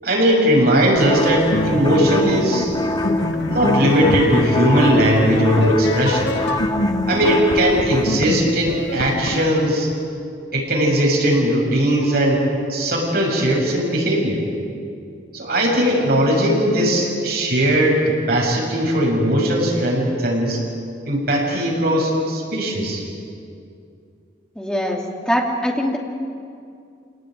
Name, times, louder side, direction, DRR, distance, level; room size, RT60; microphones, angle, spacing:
voice 1, 0.0-2.7 3.5-6.3 7.1-9.9 10.5-12.4 12.7-14.4 15.3-20.6 21.1-23.0, equal, 55° right, -2 dB, 6.9 m, -18 dB
sound 1, 1.0-8.2, left 1 dB, 20° left, 1.0 m, -25 dB
sound 2, 1.5-9.5, left 1 dB, 70° left, 1.7 m, -25 dB
voice 2, 24.5-26.0, equal, 5° left, -1 dB, 2.7 m, -22 dB
27.0 x 19.0 x 9.3 m, 2.4 s
head